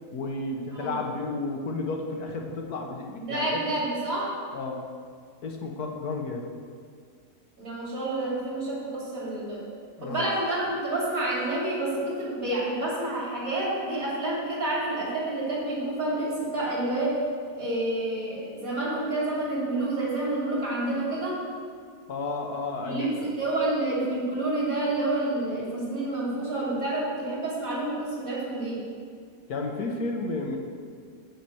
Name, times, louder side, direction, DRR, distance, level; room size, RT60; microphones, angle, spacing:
voice 1, 0.1-3.6 4.5-4.8 5.4-6.5 10.0-10.2 22.1-23.3 29.5-30.6, left 3 dB, 75° left, 1 dB, 1.5 m, -32 dB
voice 2, 3.2-4.4 7.6-9.6 10.0-17.2 17.6-21.4 22.8-28.8, right 2 dB, 60° right, -6 dB, 3.4 m, -29 dB
8.6 x 5.7 x 7.8 m, 2.1 s
omnidirectional pair, 1.7 m